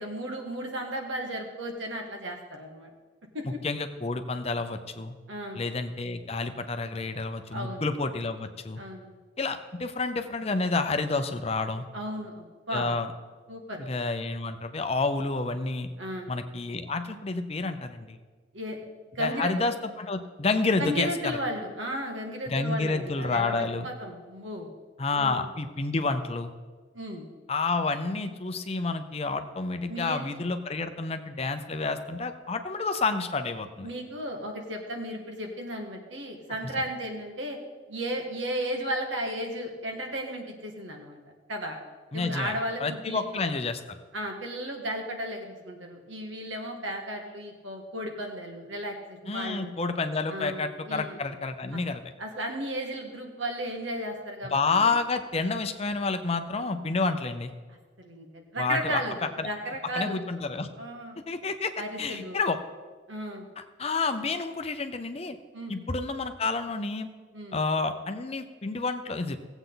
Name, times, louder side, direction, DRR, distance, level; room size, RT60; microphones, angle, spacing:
voice 1, 0.0-2.9 3.3-3.6 5.3-5.6 7.5-7.9 8.8-9.1 11.9-12.9 13.5-13.9 16.0-16.3 18.5-18.8 19.1-19.5 20.8-24.7 25.1-25.5 26.9-27.3 29.9-30.2 33.8-37.6 37.9-41.2 41.5-41.8 42.1-43.2 44.1-49.7 50.3-51.2 51.7-51.8 52.2-54.9 58.0-59.2 59.4-60.2 60.8-61.2 61.8-62.4 63.1-63.4 65.5-65.7 67.3-67.6, equal, 85° right, 2 dB, 1.7 m, -34 dB
voice 2, 3.6-5.1 5.6-8.8 9.4-11.8 12.7-13.1 13.8-15.9 16.3-18.2 19.2-21.4 22.5-23.9 25.0-26.5 27.5-33.9 42.1-42.5 42.8-44.0 49.3-52.0 54.5-57.5 58.6-59.0 59.4-59.5 60.0-60.7 61.3-61.7 62.0-62.6 63.6-65.4 65.7-67.1 67.5-69.4, left 3 dB, 35° left, 8 dB, 0.6 m, -29 dB
17.0 x 8.0 x 3.9 m, 1.4 s
head